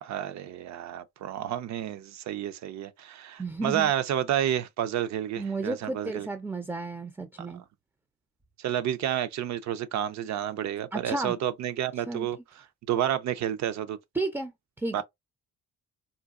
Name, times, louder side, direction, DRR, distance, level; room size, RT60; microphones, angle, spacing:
voice 1, 0.0-6.3 7.4-7.5 8.6-12.4 12.9-14.0 14.9-15.0, right 11 dB, 65° right, 0.5 m, -30 dB
voice 2, 3.4-3.9 5.4-7.6 10.9-11.3 12.1-12.3 14.1-14.5 14.8-15.0, right 2 dB, 10° right, 0.4 m, -32 dB
3.8 x 2.2 x 2.4 m
cardioid pair, 90°, 30 cm